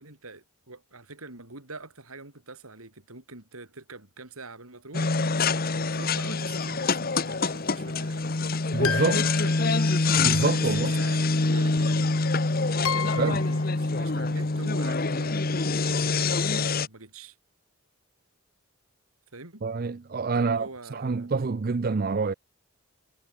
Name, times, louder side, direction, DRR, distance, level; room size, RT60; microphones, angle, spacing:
voice 1, 0.0-8.3 8.7-12.1 12.9-17.4 19.3-19.7 20.4-21.3, right 3 dB, 80° right, 4.5 m, -45 dB
sound 1, 4.9-16.9, left 3 dB, 45° left, 1.0 m, -25 dB
voice 2, 8.7-9.2 10.2-10.9 13.2-13.4 19.6-22.3, right 4 dB, 40° right, 0.4 m, -27 dB
sound 2, 8.8-10.4 11.8-11.9 12.8-13.7, left 7 dB, 85° left, 1.7 m, -33 dB
head